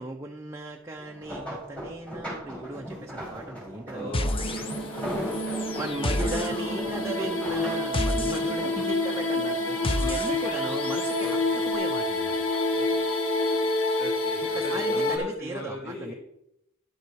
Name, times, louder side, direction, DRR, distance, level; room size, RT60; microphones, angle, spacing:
voice 1, 0.0-4.2 5.8-11.4 11.6-12.4 14.5-16.1, right 2 dB, 10° right, 2 dB, 0.6 m, -37 dB
sound 1, 1.0-10.6 10.9-11.9 12.2-13.6 14.3-14.6 15.0-15.1, equal, 5° left, 3.8 m, -39 dB
voice 2, 3.9-6.6 9.6-9.9 11.2-11.7 12.7-12.9 14.0-16.2, left 1 dB, 45° left, -3 dB, 2.6 m, -40 dB
sound 2, 4.1-5.1 5.3-11.3, left 1 dB, 25° left, 0.7 m, -32 dB
sound 3, 4.2-15.2, left 2 dB, 65° left, 1.6 m, -28 dB
10.5 x 7.0 x 4.7 m, 0.80 s
head